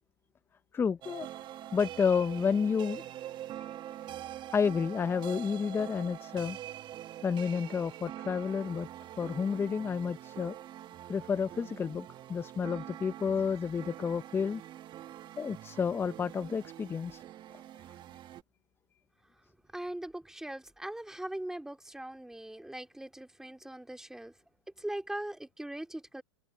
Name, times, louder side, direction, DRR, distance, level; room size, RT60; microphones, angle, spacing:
voice 1, 0.7-1.3 1.7-3.0 3.6-3.7 4.5-6.6 7.2-8.9 9.2-10.5 11.1-14.6 15.4-17.2, left 6 dB, 15° left, 0.8 m, -30 dB
sound 1, 1.0-18.4, right 12 dB, 30° right, 1.8 m, -45 dB
voice 2, 19.7-24.3 24.8-26.2, right 1 dB, 5° right, 3.1 m, -40 dB
hypercardioid pair, 110°, 16 cm